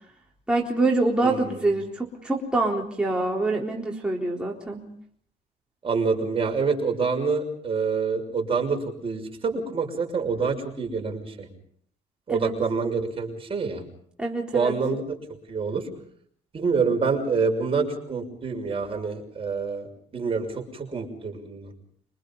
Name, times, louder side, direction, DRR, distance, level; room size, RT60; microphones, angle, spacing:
voice 1, 0.5-4.9 12.3-12.5 14.2-14.8, right 2 dB, 5° right, -2 dB, 3.9 m, -25 dB
voice 2, 1.2-1.7 5.8-11.5 12.3-13.8 14.5-15.1 15.5-15.9 16.5-19.9 20.1-21.7, right 4 dB, 35° right, 3 dB, 6.3 m, -26 dB
26.5 x 25.0 x 5.6 m, 0.64 s
cardioid pair, 110°, 17 cm